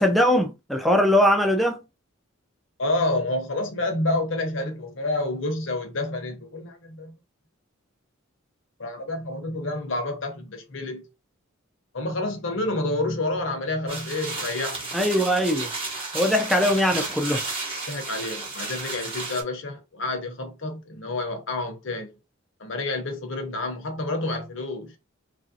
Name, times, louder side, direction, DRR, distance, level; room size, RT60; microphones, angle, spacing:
voice 1, 0.0-1.8 14.9-15.7 16.1-17.4, equal, ahead, 0.4 m, -21 dB
voice 2, 2.8-7.2 8.8-11.0 11.9-14.9 17.9-22.1 22.6-25.0, left 2 dB, 60° left, 0.8 m, -29 dB
sound 1, 13.9-19.4, right 3 dB, 25° right, 0.9 m, -33 dB
3.0 x 2.6 x 2.7 m
head